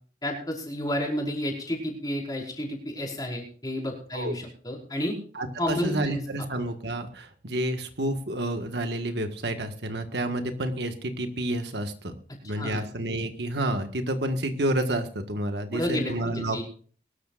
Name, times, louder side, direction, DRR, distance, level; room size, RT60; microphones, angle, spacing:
voice 1, 0.2-5.2 5.6-6.2 12.6-12.8 15.7-16.6, left 1 dB, 20° left, -1 dB, 5.1 m, -31 dB
voice 2, 5.3-12.1 12.4-16.6, right 1 dB, 65° right, 7 dB, 1.6 m, -29 dB
22.5 x 13.5 x 2.5 m, 0.44 s
head